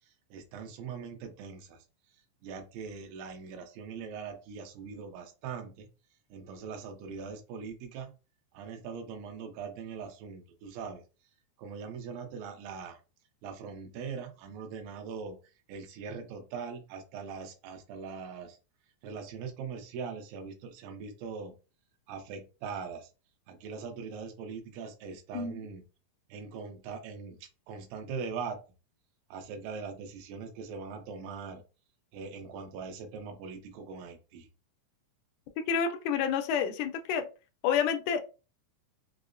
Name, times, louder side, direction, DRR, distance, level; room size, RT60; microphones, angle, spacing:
voice 1, 0.3-1.8 2.4-5.9 6.3-8.1 8.5-11.0 11.6-13.0 13.4-15.4 15.7-18.6 19.0-21.5 22.1-23.1 23.5-25.8 26.3-28.6 29.3-31.6 32.1-34.5, right 5 dB, 80° right, 4 dB, 2.3 m, -41 dB
voice 2, 35.7-37.3 37.6-38.2, left 7 dB, 80° left, 6 dB, 1.9 m, -29 dB
5.6 x 2.0 x 2.4 m, 0.32 s
omnidirectional pair, 4.0 m